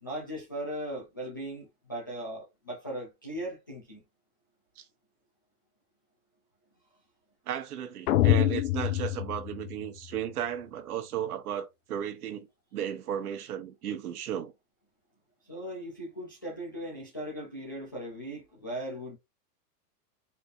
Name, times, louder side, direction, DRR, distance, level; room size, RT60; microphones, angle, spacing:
voice 1, 0.0-4.0 15.4-19.2, right 1 dB, 15° left, 0.4 m, -38 dB
voice 2, 7.5-12.5 12.7-14.5, right 10 dB, 70° right, 1.3 m, -35 dB
sound 1, 8.1-10.2, left 14 dB, 65° left, 0.7 m, -26 dB
4.7 x 4.4 x 2.6 m
supercardioid pair, 175°, 47 cm